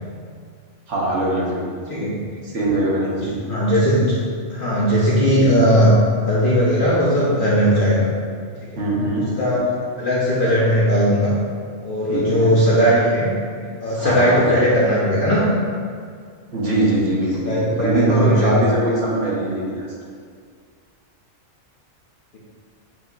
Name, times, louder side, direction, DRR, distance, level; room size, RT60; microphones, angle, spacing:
voice 1, 0.9-2.1 2.4-3.4 8.8-9.2 12.1-12.6 13.6-13.7 14.0-14.5 16.5-19.9, right 1 dB, 65° right, -5 dB, 1.2 m, -22 dB
voice 2, 3.1-4.1 4.5-6.0 6.3-8.1 9.4-9.6 10.0-11.3 11.8-13.3 13.8-15.4 17.4-18.6, equal, 50° left, -7 dB, 0.7 m, -18 dB
7.0 x 2.8 x 2.3 m, 2.1 s
omnidirectional pair, 1.4 m